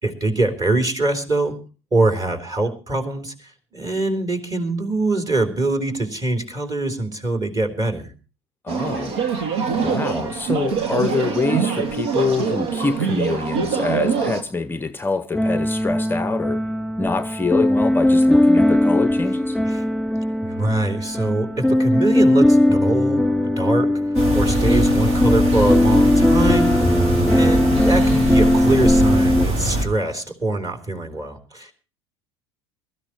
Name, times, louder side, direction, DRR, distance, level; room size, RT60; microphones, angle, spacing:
voice 1, 0.0-1.6 1.9-8.1 19.7-19.8 20.4-31.7, right 2 dB, 25° right, 3.7 m, -23 dB
voice 2, 8.6-9.2 9.8-16.6 17.0-19.6, left 4 dB, 15° left, 0.6 m, -25 dB
sound 1, 8.7-14.4, right 6 dB, 70° right, 2.0 m, -24 dB
sound 2, 15.3-29.4, left 1 dB, ahead, 3.0 m, -18 dB
sound 3, 24.1-29.8, right 1 dB, 50° right, 3.7 m, -23 dB
22.5 x 13.5 x 3.0 m
hypercardioid pair, 75°, 14 cm